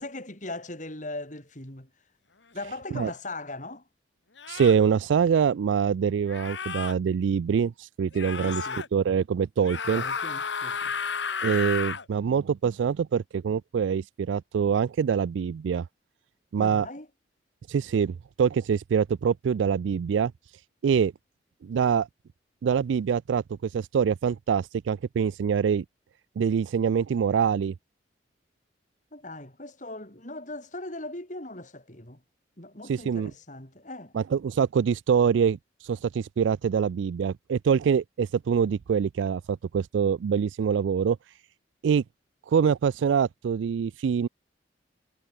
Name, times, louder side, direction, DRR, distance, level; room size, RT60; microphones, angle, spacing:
voice 1, 0.0-1.9 2.5-3.8 8.4-8.8 9.9-10.9 16.6-17.1 29.1-32.2 32.6-34.1, left 2 dB, 45° left, 6.4 m, -39 dB
sound 1, 3.0-3.2 4.4-4.8 6.3-6.9 8.1-8.9 9.6-12.0, left 6 dB, 75° left, 1.7 m, -32 dB
voice 2, 4.5-10.0 11.4-15.9 16.5-16.9 17.7-20.3 20.8-21.1 21.6-22.1 22.6-25.8 26.4-27.7 32.9-33.3 34.1-41.2 41.8-42.0 42.5-44.3, right 7 dB, 85° right, 0.3 m, -25 dB
head